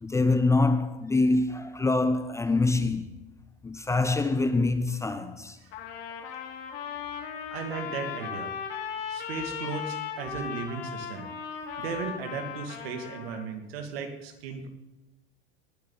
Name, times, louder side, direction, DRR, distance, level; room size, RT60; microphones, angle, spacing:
voice 1, 0.0-3.0 3.6-5.6, left 3 dB, 10° left, 0.7 m, -25 dB
Trumpet, 5.7-13.4, left 7 dB, 70° left, 3.2 m, -37 dB
voice 2, 7.5-8.6 9.1-11.3 11.8-14.7, right 5 dB, 80° right, 2.5 m, -36 dB
19.5 x 8.5 x 4.0 m
supercardioid pair, 130°, 30 cm